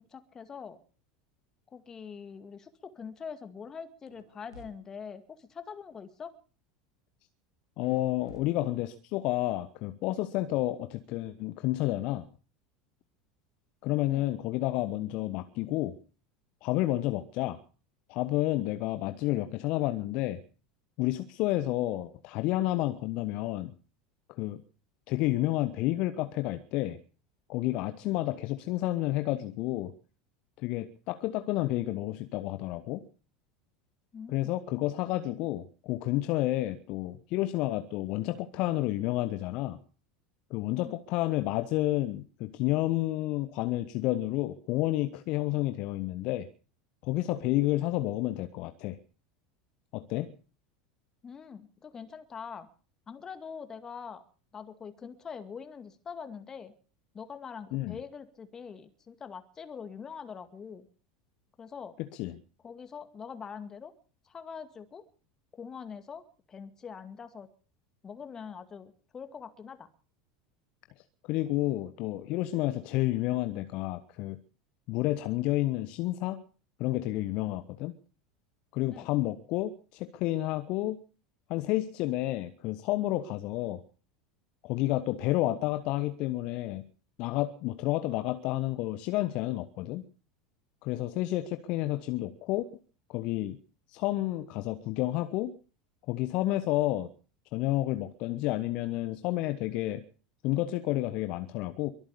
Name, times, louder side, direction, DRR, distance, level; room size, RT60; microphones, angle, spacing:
voice 1, 0.1-0.8 1.7-6.3 14.1-14.3 34.1-34.5 40.8-41.0 51.2-52.7 53.1-54.2 54.5-56.7 57.1-60.9 61.6-62.0 62.6-63.9 64.2-65.0 65.5-67.5 68.0-69.9 78.9-79.1, left 6 dB, 25° left, 9 dB, 2.2 m, -43 dB
sound 1, 4.1-4.7 7.8-9.0, left 4 dB, 90° left, 2.8 m, -51 dB
voice 2, 7.8-12.3 13.8-16.0 16.6-17.6 18.1-20.4 21.0-23.7 24.4-24.6 25.1-27.0 27.5-29.9 30.6-33.0 34.3-39.8 40.5-46.5 47.0-49.0 49.9-50.3 57.7-58.0 62.2-62.3 71.2-74.4 74.9-76.4 76.8-77.9 78.7-81.0 81.5-83.8 84.6-86.8 87.2-90.0 90.8-92.7 93.1-93.6 93.9-95.5 96.1-97.1 97.5-100.0 100.4-101.9, left 16 dB, 50° left, 10 dB, 1.1 m, -30 dB
23.0 x 8.9 x 6.8 m, 0.40 s
figure-of-eight pair, 75°, 2 cm